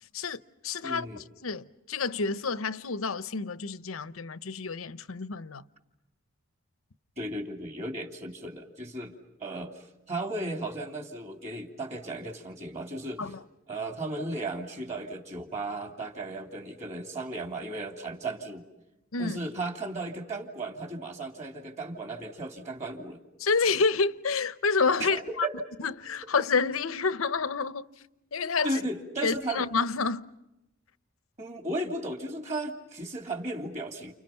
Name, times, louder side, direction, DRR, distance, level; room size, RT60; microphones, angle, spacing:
voice 1, 0.1-5.6 13.2-13.4 19.1-19.4 23.4-25.5 25.8-27.9 28.3-28.8 29.2-30.2, left 4 dB, 85° left, 0.9 m, -29 dB
voice 2, 0.8-1.2 7.2-9.1 9.4-13.3 13.7-18.6 19.2-23.2 25.0-25.5 28.6-29.7 31.4-34.1, right 2 dB, 35° right, 2.8 m, -35 dB
30.0 x 29.5 x 5.8 m
head